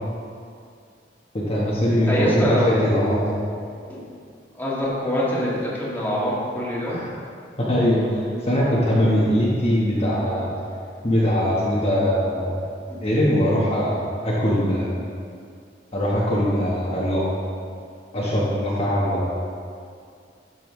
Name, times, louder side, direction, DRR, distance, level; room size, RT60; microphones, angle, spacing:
voice 1, 1.3-2.6 2.8-3.4 6.9-7.0 7.6-10.5 11.0-12.6 13.0-14.9 15.9-17.2 18.1-19.2, equal, 35° left, -7 dB, 1.2 m, -21 dB
voice 2, 1.9-3.0 3.9-4.1 4.5-7.0 12.9-13.1, equal, 10° left, -7 dB, 1.7 m, -25 dB
12.0 x 5.6 x 3.2 m, 2.3 s
head